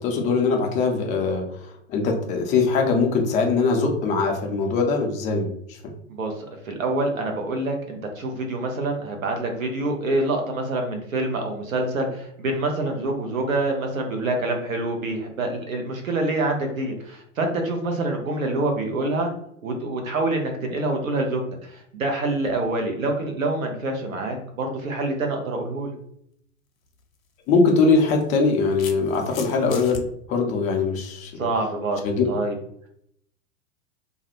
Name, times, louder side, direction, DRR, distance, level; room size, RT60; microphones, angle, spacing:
voice 1, 0.0-5.8 27.5-31.3 32.0-32.2, left 4 dB, 20° left, 2 dB, 0.3 m, -22 dB
voice 2, 6.1-19.3 19.6-25.9 31.4-32.0 32.3-32.5, right 2 dB, 80° right, 3 dB, 0.8 m, -26 dB
sound 1, 26.8-27.0 28.1-30.0, left 5 dB, 90° left, 0.5 m, -38 dB
2.4 x 2.1 x 2.8 m, 0.71 s
figure-of-eight pair, 90°, 40 cm